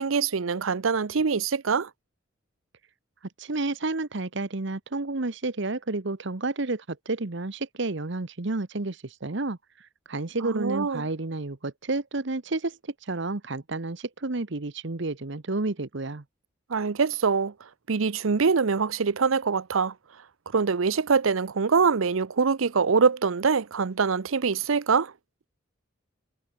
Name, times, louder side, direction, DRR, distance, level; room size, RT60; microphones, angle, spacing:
voice 1, 0.0-1.9 10.4-11.0 16.7-17.5 17.9-19.9 20.5-25.1, right 5 dB, 85° right, 0.7 m, -24 dB
voice 2, 3.4-16.2, right 2 dB, 60° right, 1.1 m, -31 dB
head